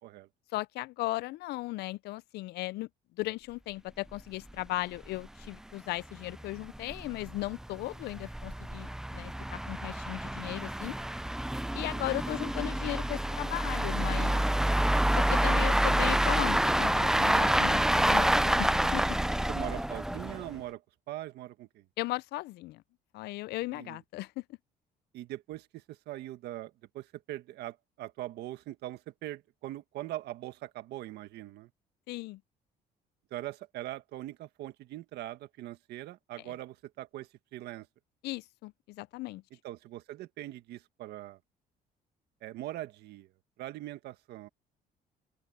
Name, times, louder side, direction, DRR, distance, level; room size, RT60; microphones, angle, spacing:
voice 1, 0.5-2.9 3.2-11.0 11.7-14.4 15.2-19.0 22.0-22.8 23.1-24.4 32.1-32.4 38.2-39.4, left 19 dB, 75° left, 0.4 m, -37 dB
sound 1, 4.1-4.2 4.5-4.6 5.0-5.1 5.4-5.5 6.2-20.6, right 1 dB, 5° right, 0.4 m, -28 dB
voice 2, 19.5-20.8 21.1-21.9 23.7-24.0 25.1-31.7 33.3-37.9 39.6-41.4 42.4-43.3 43.6-44.5, right 14 dB, 80° right, 1.6 m, -41 dB
open air
cardioid pair, 110°, 17 cm